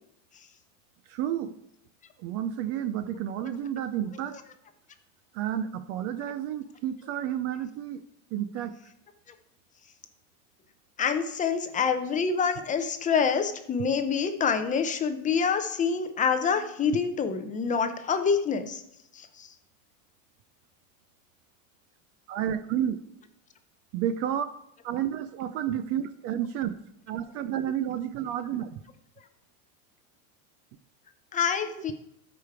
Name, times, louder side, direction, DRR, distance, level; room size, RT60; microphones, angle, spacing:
voice 1, 1.1-1.5 2.2-4.4 5.3-8.0 8.3-8.7 22.3-23.0 23.9-24.5 24.8-26.7 27.1-28.8, right 10 dB, 35° right, 12 dB, 0.4 m, -31 dB
voice 2, 11.0-18.8 19.1-19.5 31.3-31.9, left 6 dB, 20° left, 8 dB, 0.5 m, -26 dB
13.0 x 5.1 x 4.6 m, 0.77 s
supercardioid pair, 150°, 42 cm